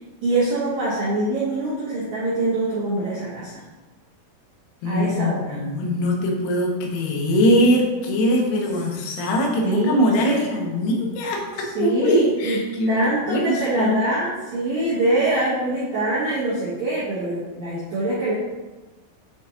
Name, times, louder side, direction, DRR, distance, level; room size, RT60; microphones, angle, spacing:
voice 1, 0.2-3.6 4.9-5.6 9.6-10.5 11.6-12.6 12.9-18.3, right 2 dB, 90° right, -8 dB, 1.9 m, -24 dB
voice 2, 4.8-14.0, equal, 85° left, 0 dB, 3.7 m, -22 dB
9.1 x 3.7 x 2.8 m, 1.2 s
omnidirectional pair, 5.9 m